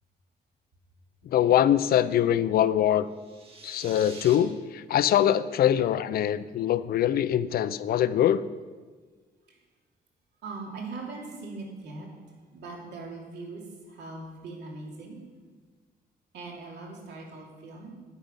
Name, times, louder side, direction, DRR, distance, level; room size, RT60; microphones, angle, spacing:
voice 1, 1.2-3.1 3.6-8.4, left 11 dB, 60° left, 16 dB, 0.4 m, -23 dB
sound 1, 3.1-4.4, right 3 dB, 35° right, 1.6 m, -46 dB
voice 2, 10.4-15.2 16.3-17.9, right 3 dB, 80° right, -2 dB, 2.6 m, -41 dB
9.4 x 9.1 x 5.5 m, 1.4 s
wide cardioid pair, 175°, 17 cm